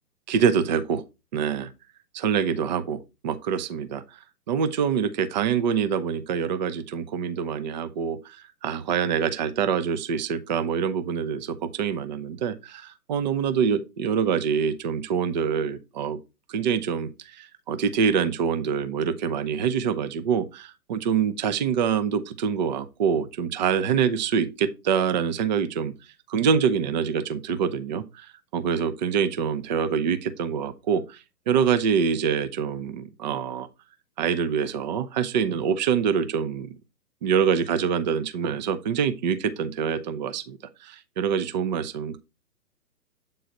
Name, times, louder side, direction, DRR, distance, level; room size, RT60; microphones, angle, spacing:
voice 1, 0.3-1.0 1.3-1.7 2.1-4.2 4.5-16.2 16.5-25.9 26.3-31.2 31.5-33.7 34.2-36.7 37.2-42.2, right 7 dB, 30° right, 0.5 m, -25 dB
7.8 x 3.9 x 3.9 m
hypercardioid pair, 130°, 46 cm